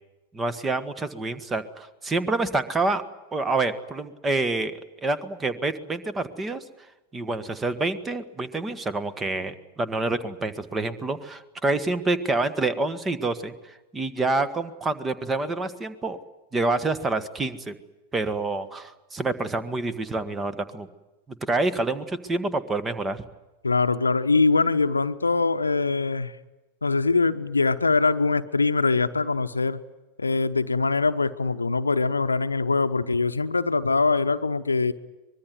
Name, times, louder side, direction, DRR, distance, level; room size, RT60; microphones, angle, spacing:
voice 1, 0.3-3.0 3.3-6.6 7.1-16.2 16.5-17.7 18.1-20.9 21.5-23.2, right 2 dB, 15° right, 13 dB, 1.6 m, -27 dB
voice 2, 23.6-26.4 26.8-29.8 30.2-34.9, left 3 dB, 80° left, 10 dB, 0.9 m, -23 dB
24.0 x 22.0 x 9.4 m, 1.1 s
figure-of-eight pair, 90°, 0 cm